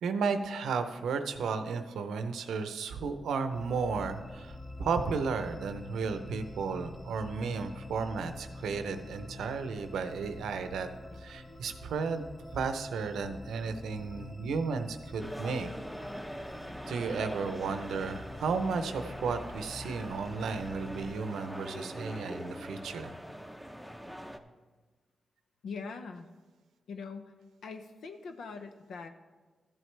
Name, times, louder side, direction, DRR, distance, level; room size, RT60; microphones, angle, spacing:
voice 1, 0.0-10.9 11.2-12.3 12.5-15.7 16.9-23.1, right 5 dB, 85° right, 9 dB, 0.6 m, -33 dB
sound 1, 3.5-21.1, left 2 dB, 30° left, 1.0 m, -46 dB
sound 2, 15.2-24.4, equal, 5° left, 0.8 m, -43 dB
voice 2, 25.6-26.3 26.9-27.3 27.6-29.1, left 4 dB, 80° left, 6 dB, 0.7 m, -42 dB
13.5 x 7.8 x 3.3 m, 1.3 s
cardioid pair, 55°, 0 cm